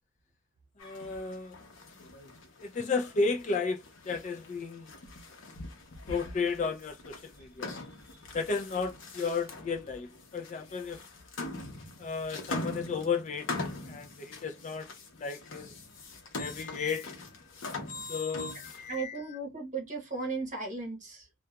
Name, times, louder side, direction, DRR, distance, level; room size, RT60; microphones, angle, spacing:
sound 1, 0.8-19.0, left 2 dB, 75° left, 0.7 m, -43 dB
voice 1, 0.8-1.6 2.6-4.9 6.1-7.7 8.3-11.0 12.0-13.5 13.9-14.9 15.1-15.7 16.4-17.2 17.9-19.2, left 4 dB, 40° left, 0.3 m, -33 dB
voice 2, 7.4-8.2 18.9-21.3, right 4 dB, 40° right, 1.0 m, -37 dB
2.8 x 2.2 x 2.2 m
head